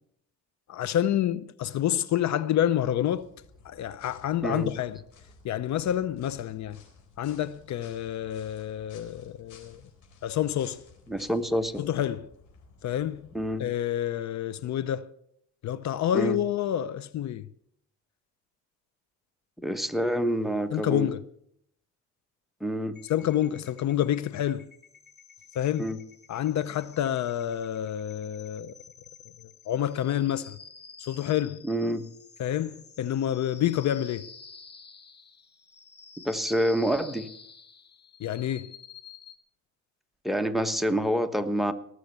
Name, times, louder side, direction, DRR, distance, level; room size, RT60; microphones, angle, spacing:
voice 1, 0.7-3.3 3.6-5.0 5.4-6.8 7.2-9.8 10.2-10.8 11.8-12.3 12.8-13.2 13.6-15.1 15.6-17.5 20.7-21.2 23.1-24.7 25.5-25.9 26.3-28.7 29.7-30.6 31.0-31.7 32.4-34.3 38.2-38.7, left 11 dB, 65° left, 0.7 m, -28 dB
sound 1, 3.1-13.6, left 4 dB, 80° left, 4.2 m, -55 dB
voice 2, 4.4-4.7 11.1-11.9 13.3-13.6 16.1-16.4 19.6-21.1 22.6-23.0 25.8-26.0 31.6-32.1 36.2-37.3 40.2-41.7, equal, ahead, 1.2 m, -27 dB
sound 2, 22.9-39.4, left 5 dB, 35° left, 1.5 m, -50 dB
18.5 x 6.5 x 8.2 m
cardioid pair, 90°, 30 cm